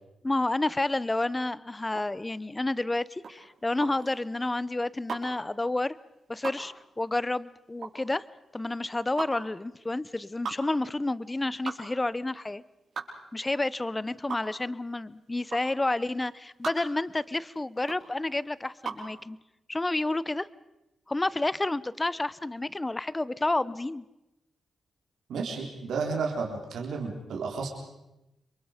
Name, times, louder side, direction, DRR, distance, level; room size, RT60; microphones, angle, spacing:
voice 1, 0.2-5.9 6.3-8.2 8.5-12.6 13.3-19.4 19.7-20.5 21.1-24.0, left 2 dB, 20° left, 19 dB, 0.8 m, -30 dB
sound 1, 1.9-19.1, right 5 dB, 70° right, 5.2 m, -40 dB
voice 2, 25.3-27.7, right 4 dB, 85° right, 0 dB, 3.9 m, -32 dB
28.0 x 23.0 x 5.2 m, 0.94 s
cardioid pair, 70°, 0 cm